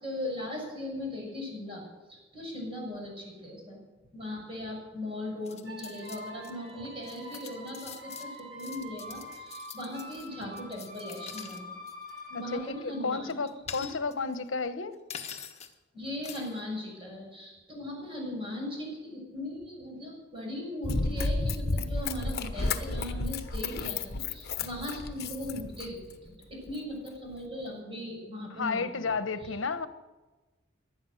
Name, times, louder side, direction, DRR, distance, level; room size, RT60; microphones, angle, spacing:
voice 1, 0.0-3.8 4.1-11.8 12.3-13.4 13.7-13.9 15.9-29.6, left 1 dB, 30° right, -1 dB, 6.7 m, -39 dB
sound 1, 5.5-6.5 6.8-11.6 11.9-12.2 13.3-14.3 15.1-15.7 16.2-16.6, left 8 dB, 35° left, 1.4 m, -45 dB
sound 2, 5.7-13.6, left 1 dB, 75° right, 5.3 m, -45 dB
voice 2, 12.3-15.0 28.5-29.9, left 4 dB, 75° left, 12 dB, 1.0 m, -32 dB
Run, 20.8-26.1 26.7-26.8, left 3 dB, 55° left, 1.1 m, -32 dB
18.5 x 12.0 x 6.5 m, 1.2 s
head